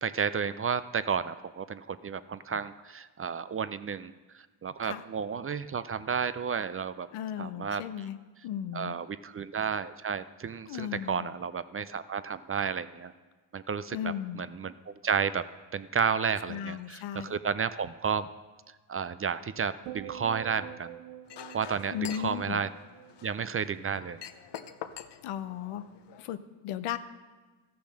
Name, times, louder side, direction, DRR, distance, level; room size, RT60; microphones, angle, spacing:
voice 1, 0.0-7.1 7.4-8.1 8.7-13.1 13.5-15.4 15.7-18.3 18.9-21.0 21.5-22.7 23.2-24.2, right 6 dB, 30° right, 14 dB, 0.4 m, -32 dB
voice 2, 7.1-8.2 8.4-9.0 10.7-11.3 13.9-14.4 16.5-17.4 21.9-22.6 25.2-25.9 26.2-27.0, left 10 dB, 85° left, 12 dB, 0.8 m, -36 dB
sound 1, 19.9-24.2 24.5-25.0, right 12 dB, 80° right, 0.6 m, -47 dB
Chink clink, 21.3-26.2, left 9 dB, 60° left, 0.8 m, -46 dB
13.5 x 7.0 x 6.4 m, 1.3 s
cardioid pair, 75°, 48 cm